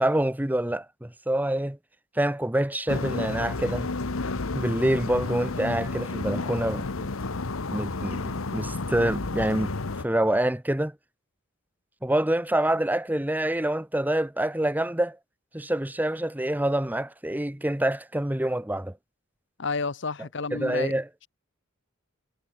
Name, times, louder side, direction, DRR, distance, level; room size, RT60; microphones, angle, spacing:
voice 1, 0.0-1.8 2.2-3.9 4.5-7.1 7.7-9.7 10.0-10.9 12.0-15.2 15.5-18.9 20.5-21.1, right 1 dB, 10° right, 0.9 m, -26 dB
sound 1, 2.9-10.0, left 3 dB, 85° left, 1.1 m, -31 dB
voice 2, 19.6-20.9, left 4 dB, 60° left, 1.1 m, -30 dB
head